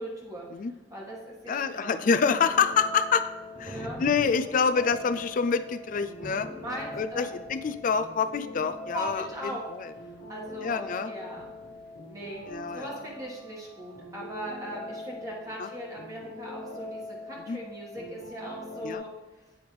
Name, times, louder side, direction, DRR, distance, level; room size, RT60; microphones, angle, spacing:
voice 1, 0.0-0.5 0.9-2.1 3.6-4.0 6.5-7.3 8.9-9.6 10.3-11.4 12.1-12.4 12.7-19.1, right 1 dB, 20° right, -4 dB, 1.3 m, -39 dB
voice 2, 1.5-3.2 3.6-6.5 7.0-9.3 9.7-9.9 10.6-11.1 12.5-13.0 15.6-15.7 17.5-17.6 18.8-19.0, left 6 dB, 45° left, 10 dB, 0.4 m, -27 dB
Thunder, 1.5-13.3, equal, 35° right, 0.8 m, -50 dB
sound 1, 2.3-19.0, left 2 dB, 85° left, 1.4 m, -43 dB
8.7 x 3.4 x 4.8 m, 1.1 s
head